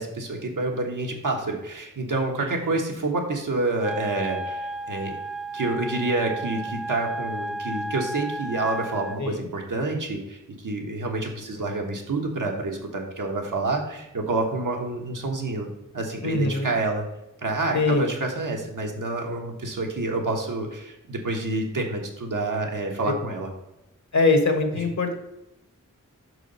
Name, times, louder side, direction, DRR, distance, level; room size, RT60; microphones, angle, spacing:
voice 1, 0.0-5.1 5.5-10.4 10.6-15.7 15.9-17.0 17.4-23.5, right 2 dB, 75° right, 1 dB, 1.5 m, -28 dB
Wind instrument woodwind instrument, 3.8-9.2, right 1 dB, ahead, 0.4 m, -33 dB
voice 2, 16.2-16.7 17.7-18.1 24.1-25.1, left 3 dB, 60° left, 5 dB, 1.3 m, -22 dB
5.9 x 4.8 x 5.4 m, 0.90 s
wide cardioid pair, 90°, 32 cm